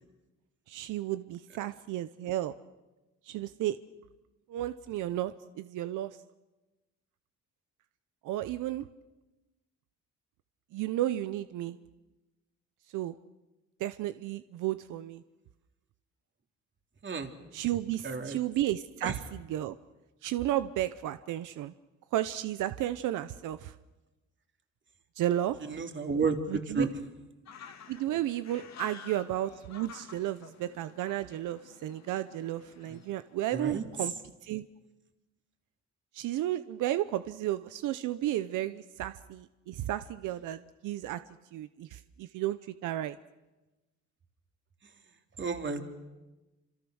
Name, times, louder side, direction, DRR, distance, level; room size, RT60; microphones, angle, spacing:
voice 1, 0.7-2.5 3.3-3.8 4.5-6.2 8.2-8.9 10.7-11.8 12.9-13.1 13.8-15.2 17.5-19.8 20.2-21.7 22.1-23.7 25.2-25.6 26.5-26.8 27.9-34.1 34.4-34.7 36.1-41.2 41.5-43.2, right 13 dB, 85° right, 12 dB, 0.8 m, -33 dB
voice 2, 18.0-18.4 19.0-19.2 25.6-26.9 32.9-33.0 33.5-33.8 45.4-45.8, right 4 dB, 40° right, 5 dB, 3.0 m, -31 dB
sound 1, 27.5-33.4, left 7 dB, 60° left, 2.4 m, -51 dB
27.5 x 26.5 x 6.4 m, 1.1 s
cardioid pair, 90°, 30 cm